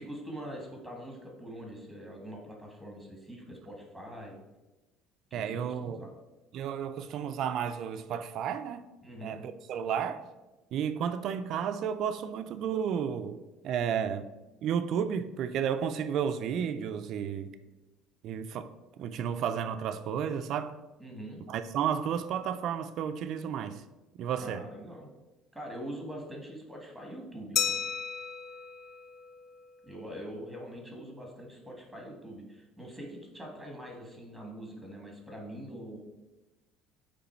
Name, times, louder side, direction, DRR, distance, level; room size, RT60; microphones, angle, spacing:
voice 1, 0.0-4.4 5.3-6.1 9.0-9.3 21.0-21.4 24.4-25.1 25.5-27.8 29.8-36.0, equal, ahead, 1.6 m, -43 dB
voice 2, 5.3-6.0 6.5-8.9 9.2-10.2 10.7-13.4 13.6-14.3 14.6-17.5 18.2-18.7 19.0-20.8 21.5-23.8 24.1-24.6, right 8 dB, 55° right, 0.4 m, -32 dB
Glass, 27.6-30.0, left 7 dB, 40° left, 0.3 m, -34 dB
8.1 x 3.1 x 4.4 m
cardioid pair, 130°, 0 cm